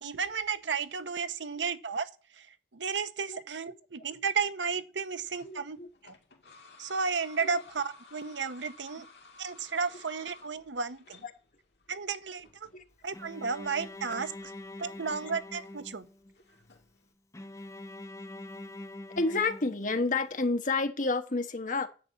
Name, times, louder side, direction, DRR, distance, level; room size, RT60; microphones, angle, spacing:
voice 1, 0.0-2.1 2.4-2.5 2.7-5.8 6.0-6.1 6.8-9.1 9.4-11.2 11.9-12.5 13.0-14.3 14.8-16.1, right 5 dB, 85° right, 0.9 m, -33 dB
sound 1, 5.3-17.1, left 3 dB, 65° left, 2.1 m, -57 dB
voice 2, 5.4-5.9 7.4-7.6 11.2-11.3 12.7-12.8 19.2-21.9, left 3 dB, 45° left, 1.3 m, -30 dB
Bowed string instrument, 13.1-16.3 17.3-20.3, left 1 dB, 15° left, 0.9 m, -45 dB
10.5 x 5.6 x 8.4 m
head